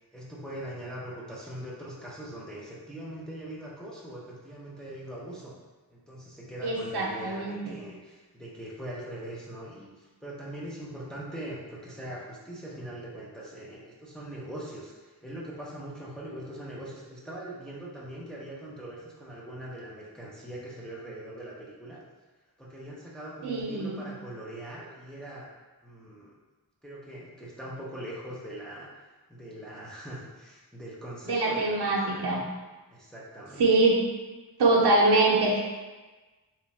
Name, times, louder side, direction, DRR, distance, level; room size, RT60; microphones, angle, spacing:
voice 1, 0.1-5.5 5.9-22.0 22.6-25.5 25.8-26.3 26.8-28.9 29.3-32.4 32.9-33.7, right 1 dB, ahead, -6 dB, 0.6 m, -41 dB
voice 2, 6.6-7.8 23.4-24.1 31.3-32.4 33.6-34.0 34.6-35.6, right 2 dB, 70° right, -2 dB, 0.7 m, -24 dB
3.0 x 2.3 x 4.2 m, 1.2 s
wide cardioid pair, 110°, 40 cm